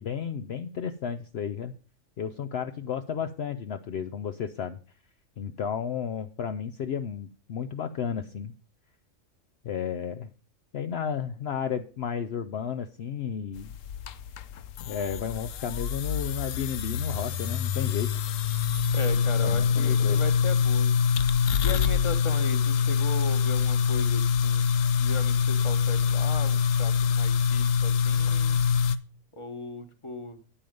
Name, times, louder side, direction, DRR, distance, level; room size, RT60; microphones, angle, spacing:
voice 1, 0.0-1.7 2.2-4.8 5.4-8.5 9.6-10.3 10.7-13.7 14.9-18.1 19.4-20.2, left 7 dB, 60° left, 9 dB, 0.8 m, -33 dB
sound 1, 13.6-29.0, left 6 dB, 80° left, 1.1 m, -25 dB
voice 2, 18.9-20.9 21.6-24.7 25.0-28.6 29.3-30.4, left 2 dB, 25° left, 8 dB, 1.2 m, -37 dB
9.2 x 8.6 x 5.2 m, 0.37 s
omnidirectional pair, 1.3 m